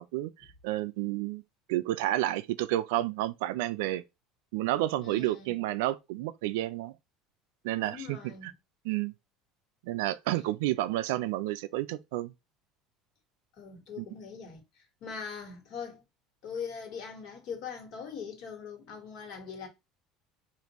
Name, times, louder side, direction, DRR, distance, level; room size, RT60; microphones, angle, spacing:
voice 1, 0.0-1.4 1.7-4.0 4.5-6.9 7.6-8.5 8.8-9.1 9.8-12.3 14.0-14.1, right 15 dB, 85° right, 0.3 m, -30 dB
voice 2, 5.0-5.6 7.8-8.5 13.6-14.6 15.0-16.0 16.4-19.7, left 6 dB, 55° left, 1.6 m, -41 dB
5.1 x 2.5 x 3.0 m
cardioid pair, 150°, 0 cm